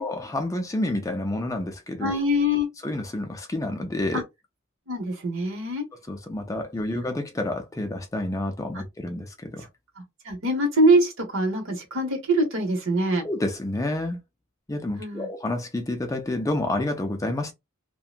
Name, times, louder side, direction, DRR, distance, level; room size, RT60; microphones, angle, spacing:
voice 1, 0.0-2.1 2.8-4.2 6.1-9.7 13.2-14.2 14.7-17.5, left 1 dB, 15° left, 0.4 m, -29 dB
voice 2, 2.0-2.7 4.1-4.2 4.9-5.8 8.7-8.8 10.2-13.2 15.0-15.3, right 1 dB, 65° right, 1.0 m, -23 dB
2.8 x 2.1 x 2.4 m
head